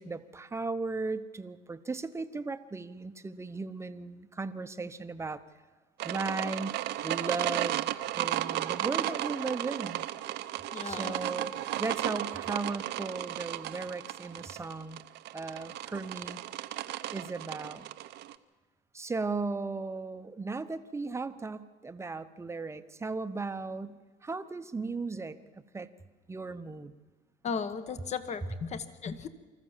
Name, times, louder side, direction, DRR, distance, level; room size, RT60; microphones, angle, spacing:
voice 1, 0.0-5.4 6.0-7.9 8.2-10.1 10.8-15.0 15.3-16.4 17.1-17.9 18.9-25.9 26.3-26.9, right 3 dB, 15° right, 11 dB, 0.9 m, -36 dB
sound 1, 6.0-18.3, right 14 dB, 65° right, 0.8 m, -34 dB
voice 2, 10.7-11.2 27.4-29.3, left 6 dB, 35° left, 12 dB, 1.3 m, -36 dB
25.5 x 14.0 x 7.4 m, 1.3 s
cardioid pair, 120°, 19 cm